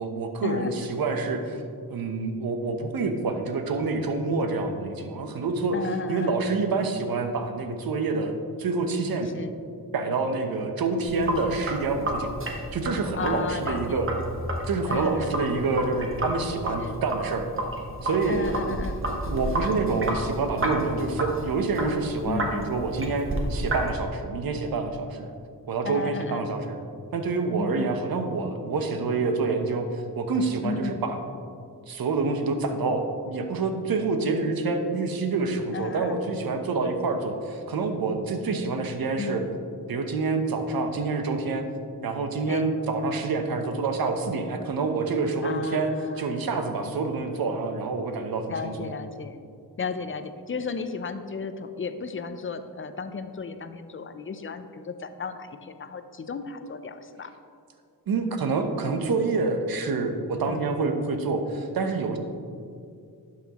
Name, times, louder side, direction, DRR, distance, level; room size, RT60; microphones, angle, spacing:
voice 1, 0.0-1.6 1.9-5.8 6.1-8.3 8.6-9.3 9.9-12.3 12.7-14.1 14.6-17.5 18.0-18.8 19.3-25.3 25.7-26.8 27.1-31.2 31.9-39.4 39.9-41.6 42.0-45.9 46.2-48.9 58.1-62.2, right 3 dB, 70° right, 6 dB, 0.9 m, -27 dB
voice 2, 5.7-6.4 9.3-9.6 13.1-14.1 14.9-15.4 16.8-17.0 18.3-19.0 22.2-22.7 25.8-26.5 27.6-28.0 30.6-31.0 35.7-36.2 39.2-39.5 42.5-42.7 45.4-46.4 48.5-49.4 49.8-57.3 60.4-60.8, left 5 dB, 35° left, 10 dB, 0.5 m, -34 dB
Sink (filling or washing), 11.0-23.9, right 1 dB, 35° right, 1.2 m, -31 dB
11.0 x 6.0 x 3.0 m, 2.4 s
cardioid pair, 75°, 37 cm